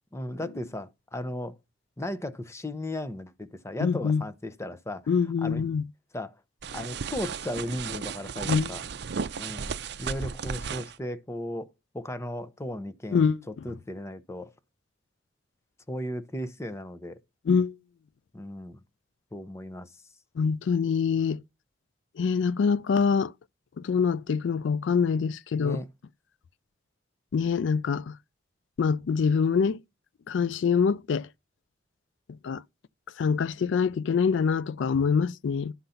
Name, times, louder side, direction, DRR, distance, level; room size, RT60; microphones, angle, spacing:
voice 1, 0.1-1.5 2.0-5.1 5.4-5.6 6.1-6.4 6.7-8.8 9.4-9.7 10.0-11.7 11.9-14.5 15.9-17.2 18.3-18.8 19.3-19.9 25.6-25.9, left 1 dB, 15° left, 0.7 m, -36 dB
voice 2, 3.8-4.2 5.1-5.8 8.5-8.7 13.1-13.4 17.5-17.7 20.4-21.4 22.2-23.3 23.8-25.8 27.3-28.1 28.8-29.8 30.3-31.3 32.4-32.6 33.2-35.7, left 6 dB, 75° left, 0.4 m, -25 dB
Luggage Laptop Bag Foley Handling, 6.6-10.9, right 6 dB, 60° right, 0.5 m, -34 dB
11.0 x 3.9 x 5.6 m
head